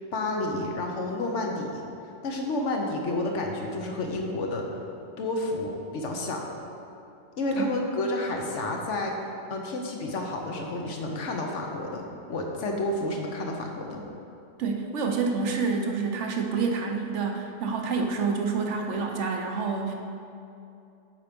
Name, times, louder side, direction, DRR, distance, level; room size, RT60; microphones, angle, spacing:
voice 1, 0.1-1.8 2.2-4.7 5.2-6.4 7.4-9.2 9.5-14.0, left 2 dB, 65° left, 1 dB, 1.1 m, -30 dB
voice 2, 14.6-19.9, right 4 dB, 65° right, 3 dB, 1.0 m, -28 dB
7.7 x 4.7 x 5.2 m, 2.7 s
omnidirectional pair, 1.3 m